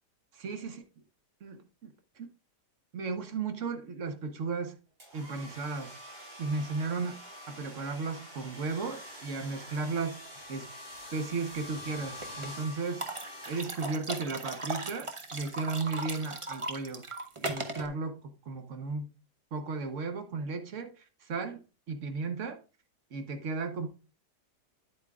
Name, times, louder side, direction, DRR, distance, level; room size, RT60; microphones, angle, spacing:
voice 1, 0.3-0.8 1.4-2.3 2.9-4.8 5.1-6.0 6.4-7.2 7.5-10.2 10.5-10.7 11.1-13.0 13.5-17.0 17.4-19.1 19.5-22.6 23.1-23.9, right 4 dB, 50° right, 1.2 m, -35 dB
sound 1, 5.0-14.1, equal, 75° right, 4.8 m, -46 dB
sound 2, 12.2-12.5 13.0-17.9, right 2 dB, 35° right, 0.5 m, -37 dB
9.2 x 8.3 x 2.3 m
omnidirectional pair, 1.8 m